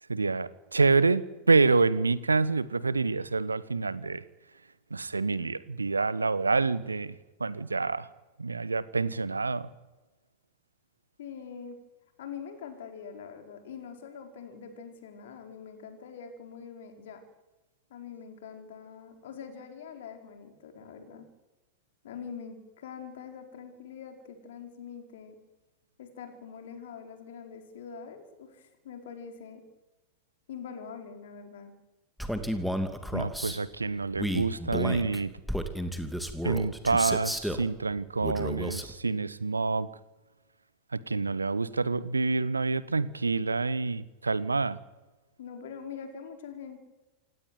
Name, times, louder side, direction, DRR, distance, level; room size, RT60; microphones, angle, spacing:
voice 1, 0.1-4.2 4.9-8.1 8.4-9.7 33.1-35.3 36.4-39.9 40.9-44.8, right 4 dB, 80° right, 18 dB, 1.1 m, -27 dB
voice 2, 11.2-11.8 12.2-17.2 17.9-21.3 22.0-25.3 26.0-29.6 30.5-31.7 45.4-46.8, left 6 dB, 60° left, 5 dB, 4.9 m, -44 dB
Male speech man speaking, 32.2-33.6 34.2-37.7 38.2-38.9, equal, ahead, 2.6 m, -32 dB
27.5 x 18.0 x 9.4 m, 1.2 s
figure-of-eight pair, 90°, 0 cm